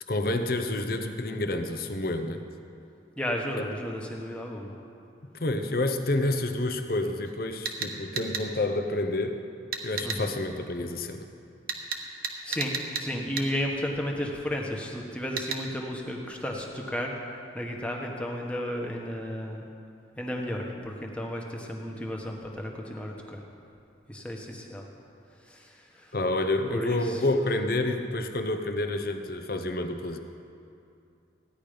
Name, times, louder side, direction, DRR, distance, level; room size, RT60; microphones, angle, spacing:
voice 1, 0.1-2.4 5.3-9.4 9.8-11.3 26.1-30.2, left 2 dB, 50° left, 7 dB, 0.8 m, -29 dB
voice 2, 3.2-4.7 10.0-10.3 12.4-19.7 20.2-23.4 24.1-24.9 25.3-26.2 26.7-27.2, equal, 5° left, 0 dB, 1.2 m, -33 dB
sound 1, 7.2-7.4 7.7-8.5 9.7-10.2 11.7-13.1 13.4-13.5 15.4-15.6, right 6 dB, 50° right, 1.0 m, -32 dB
16.0 x 10.5 x 5.1 m, 2.6 s
head